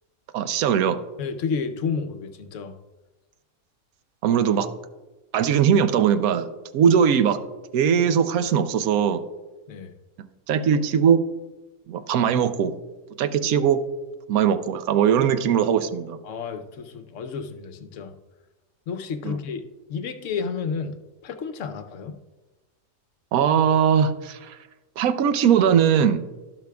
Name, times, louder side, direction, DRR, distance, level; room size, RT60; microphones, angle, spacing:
voice 1, 0.3-1.0 4.2-4.7 5.3-6.5 6.7-7.4 7.7-9.2 10.5-11.2 11.9-12.7 13.2-13.8 14.3-16.2 19.2-19.4 23.3-24.6 25.0-26.2, right 8 dB, 75° right, 11 dB, 1.1 m, -20 dB
voice 2, 1.2-2.7 9.7-9.9 16.2-18.1 18.9-19.6 19.9-21.0 21.2-22.2, left 5 dB, 60° left, 8 dB, 1.0 m, -31 dB
16.5 x 6.0 x 2.3 m, 1.1 s
omnidirectional pair, 1.6 m